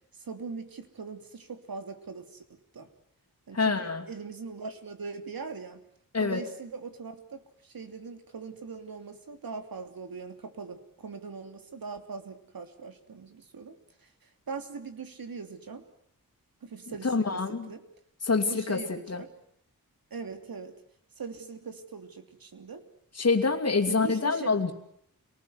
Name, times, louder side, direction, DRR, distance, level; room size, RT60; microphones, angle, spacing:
voice 1, 0.2-2.4 2.7-2.9 3.5-5.8 6.2-15.8 16.6-17.4 17.7-17.8 18.5-19.3 20.1-20.8 21.2-22.8 23.9-24.5, right 5 dB, 80° right, 7 dB, 3.2 m, -41 dB
voice 2, 3.5-4.0 6.1-6.4 17.0-17.7 18.2-18.8 19.1-19.2 23.2-24.7, left 4 dB, 45° left, 4 dB, 2.7 m, -26 dB
29.5 x 19.5 x 9.6 m, 0.71 s
wide cardioid pair, 125°, 35 cm